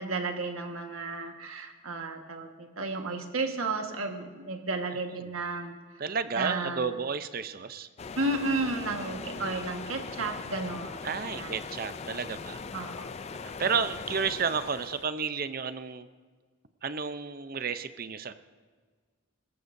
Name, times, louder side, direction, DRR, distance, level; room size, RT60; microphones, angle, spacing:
voice 1, 0.0-5.8 6.3-6.9 8.2-11.6 12.7-13.3, right 3 dB, 85° right, 4 dB, 1.5 m, -33 dB
voice 2, 6.0-7.9 9.0-9.5 11.0-12.6 13.4-16.1 16.8-18.3, right 5 dB, 45° right, 11 dB, 0.6 m, -32 dB
sound 1, 8.0-15.1, left 5 dB, 30° left, 0.3 m, -40 dB
21.5 x 14.5 x 2.6 m, 1.5 s
head